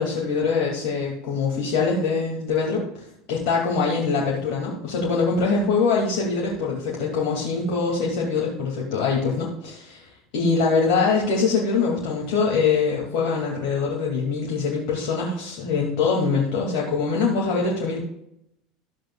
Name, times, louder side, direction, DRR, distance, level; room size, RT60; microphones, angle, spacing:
voice 1, 0.0-18.0, left 4 dB, 65° left, -3 dB, 2.1 m, -23 dB
13.5 x 7.7 x 2.3 m, 0.77 s
hypercardioid pair, 80°, 0 cm